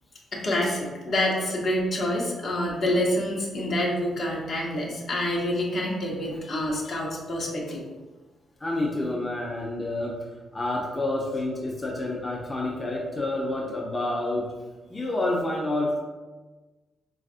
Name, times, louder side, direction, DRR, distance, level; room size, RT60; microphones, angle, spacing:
voice 1, 0.3-7.8, left 1 dB, 60° left, -3 dB, 0.9 m, -27 dB
voice 2, 8.6-10.2 10.5-14.5 14.9-16.0, left 2 dB, 25° left, -3 dB, 0.6 m, -28 dB
4.0 x 2.4 x 2.4 m, 1.2 s
hypercardioid pair, 45°, 0 cm